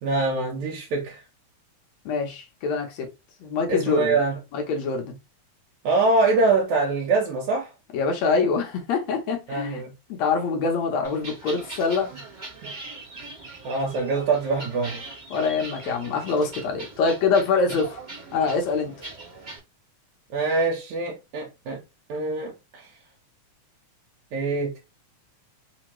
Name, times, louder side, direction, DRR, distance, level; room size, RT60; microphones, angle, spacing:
voice 1, 0.0-1.2 3.7-4.4 5.8-7.7 9.5-9.9 12.6-12.7 13.6-15.0 20.3-21.8 22.1-22.9 24.3-24.8, right 3 dB, 70° right, 2.3 m, -24 dB
voice 2, 2.1-3.1 3.4-4.2 4.5-5.2 7.9-9.8 10.1-12.1 15.3-18.0 18.3-18.9, left 4 dB, 70° left, 2.0 m, -24 dB
sound 1, 11.0-19.6, right 2 dB, 50° right, 0.5 m, -41 dB
5.1 x 2.8 x 3.0 m
omnidirectional pair, 3.6 m